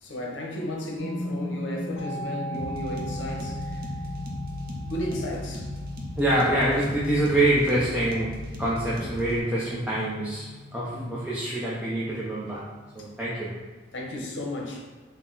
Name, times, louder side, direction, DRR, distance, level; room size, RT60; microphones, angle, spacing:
voice 1, 0.0-3.8 4.7-5.7 10.9-11.1 13.0-13.1 13.9-14.9, left 1 dB, 70° left, 0 dB, 0.8 m, -34 dB
sound 1, 1.0-13.6, left 1 dB, 15° left, 1.3 m, -37 dB
sound 2, 2.5-9.4, equal, 55° right, 0.6 m, -38 dB
voice 2, 6.2-12.7 12.9-13.6, right 1 dB, 5° right, -7 dB, 0.5 m, -26 dB
4.0 x 2.2 x 3.8 m, 1.4 s
head